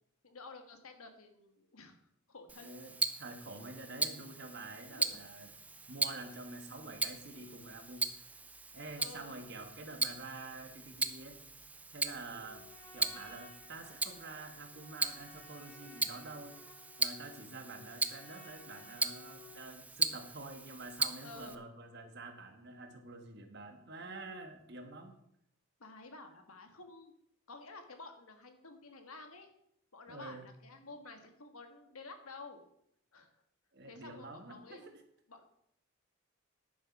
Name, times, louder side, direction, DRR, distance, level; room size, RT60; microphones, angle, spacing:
voice 1, 0.2-2.0 2.3-2.7 4.9-5.2 9.0-9.3 12.2-12.4 21.2-21.7 25.8-27.1 27.5-29.5 29.9-32.6 33.1-33.3 33.8-34.9 35.3-35.4, left 3 dB, 85° left, 6 dB, 1.7 m, -51 dB
Tick-tock, 2.5-21.6, right 3 dB, 5° right, 0.3 m, -39 dB
voice 2, 2.6-5.5 5.9-8.2 8.7-11.4 11.9-12.7 12.9-16.6 17.0-25.1 30.1-30.5 33.7-34.8, right 2 dB, 50° right, 5 dB, 1.5 m, -48 dB
Trumpet, 12.4-19.7, left 3 dB, 10° left, 3.3 m, -57 dB
10.5 x 6.8 x 6.0 m, 0.72 s
head